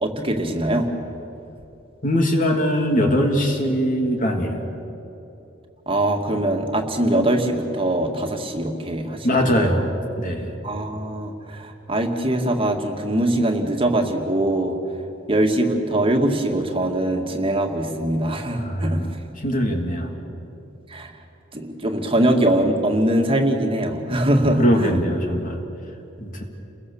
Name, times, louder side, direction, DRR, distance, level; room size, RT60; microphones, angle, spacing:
voice 1, 0.0-0.9 5.9-9.7 10.6-14.8 15.3-19.0 20.9-21.1 21.5-25.0, right 1 dB, 30° right, 2 dB, 2.1 m, -22 dB
voice 2, 2.0-4.7 9.2-10.6 18.6-20.2 24.6-25.6 26.2-26.4, equal, 45° left, 2 dB, 3.1 m, -22 dB
29.5 x 22.0 x 7.2 m, 2.9 s
head